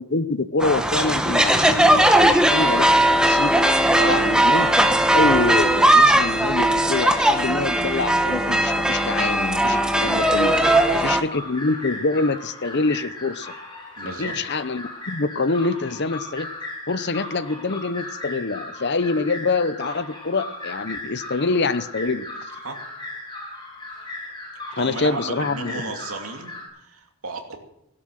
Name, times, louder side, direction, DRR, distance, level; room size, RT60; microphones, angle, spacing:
voice 1, 0.0-3.5 4.1-4.7 5.1-10.6 10.9-13.5 14.0-16.5 16.9-22.5 24.7-25.8, left 3 dB, 50° left, 15 dB, 0.7 m, -25 dB
sound 1, 0.6-11.2, right 1 dB, 5° right, 1.0 m, -18 dB
voice 2, 3.9-4.4 10.6-11.3 14.0-14.3 22.6-22.8 24.7-27.6, right 3 dB, 70° right, 4 dB, 2.6 m, -33 dB
sound 2, 8.7-26.7, left 2 dB, 20° left, 6.1 m, -37 dB
17.0 x 12.0 x 6.5 m, 0.81 s
head